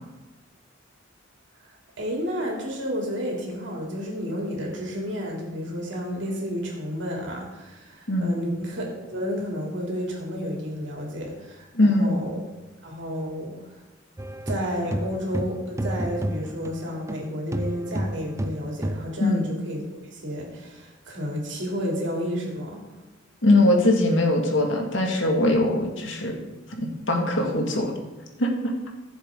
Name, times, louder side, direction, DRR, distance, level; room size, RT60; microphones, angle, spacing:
voice 1, 2.0-12.4 12.8-13.6 14.5-22.8, equal, 70° right, -1 dB, 2.9 m, -31 dB
voice 2, 11.7-12.2 19.2-19.4 23.4-26.3 26.8-27.9 28.4-28.7, left 1 dB, 70° left, 1 dB, 2.0 m, -21 dB
sound 1, 14.2-17.2 17.5-19.1, right 1 dB, 15° right, 0.4 m, -30 dB
15.5 x 7.2 x 3.8 m, 1.1 s
head